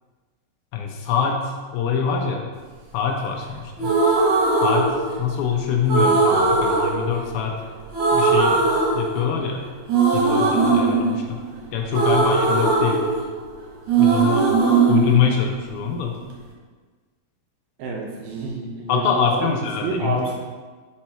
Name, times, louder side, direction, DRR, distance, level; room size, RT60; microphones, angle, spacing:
voice 1, 0.7-2.5 2.9-3.9 4.6-7.6 8.1-8.6 8.9-9.6 10.1-11.4 11.7-13.0 14.0-14.5 14.9-16.2 18.9-20.3, left 7 dB, 80° left, 2 dB, 2.3 m, -24 dB
sound 1, 3.8-5.4 5.9-7.6 7.9-9.5 9.9-13.6 13.9-15.9, right 4 dB, 60° right, 2.2 m, -19 dB
voice 2, 17.8-19.5 19.8-20.3, right 4 dB, 75° right, -1 dB, 2.3 m, -28 dB
7.1 x 4.5 x 4.3 m, 1.4 s
omnidirectional pair, 4.6 m